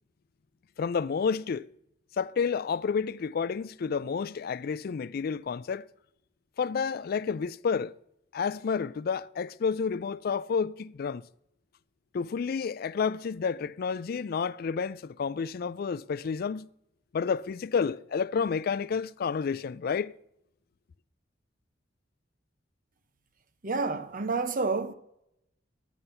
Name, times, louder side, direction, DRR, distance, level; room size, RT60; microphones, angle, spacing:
voice 1, 0.8-1.7 2.2-5.8 6.6-7.9 8.3-11.2 12.1-16.7 17.1-20.1, left 6 dB, 55° left, 0.4 m, -30 dB
voice 2, 23.6-24.9, right 4 dB, 45° right, 0.9 m, -29 dB
11.5 x 9.3 x 5.6 m
head